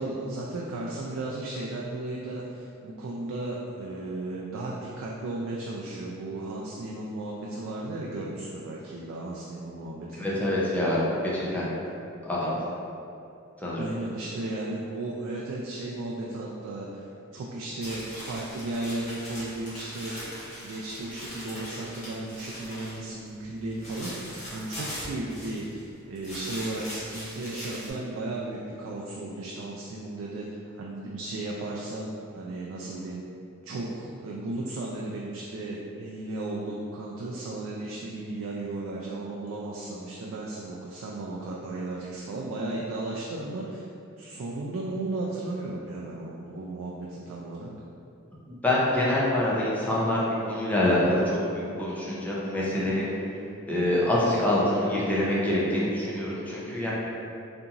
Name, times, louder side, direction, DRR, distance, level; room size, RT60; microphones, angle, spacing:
voice 1, 0.0-10.3 13.7-20.2 20.6-24.1 24.5-33.2 33.6-43.9 44.2-47.7, right 2 dB, 80° right, -3 dB, 0.3 m, -35 dB
voice 2, 10.2-11.7 12.2-12.6 13.6-13.9 48.5-53.1 53.7-56.9, left 1 dB, 5° left, -7 dB, 0.4 m, -25 dB
sound 1, 17.8-23.1 23.4-25.8 26.1-27.9, equal, 35° left, 1.0 m, -40 dB
2.8 x 2.5 x 2.4 m, 2.6 s
head